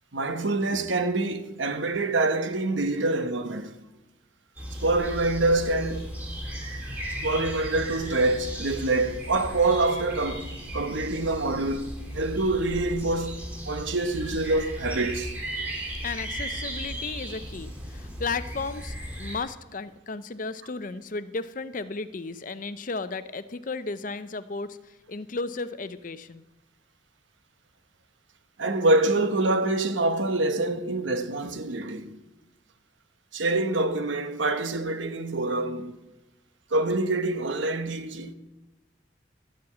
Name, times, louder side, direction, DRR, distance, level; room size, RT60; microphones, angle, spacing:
voice 1, 0.1-3.8 4.8-6.1 7.2-15.3 28.6-32.2 33.3-36.0 36.7-38.3, right 2 dB, 75° right, 1.1 m, -26 dB
sound 1, 4.6-19.4, equal, 10° right, 2.7 m, -36 dB
voice 2, 16.0-26.4, left 4 dB, 45° left, 0.6 m, -34 dB
12.5 x 7.8 x 8.3 m
head